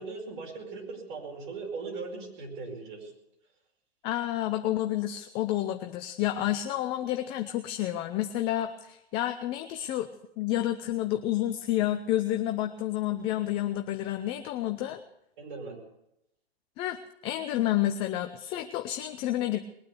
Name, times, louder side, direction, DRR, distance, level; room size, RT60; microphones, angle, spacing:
voice 1, 0.0-3.1 15.4-15.8, right 4 dB, 50° right, 0 dB, 5.1 m, -39 dB
voice 2, 4.0-10.1 10.4-15.0 16.8-19.6, left 13 dB, 15° left, 7 dB, 0.5 m, -30 dB
20.5 x 9.3 x 6.9 m, 0.83 s
hypercardioid pair, 125°, 31 cm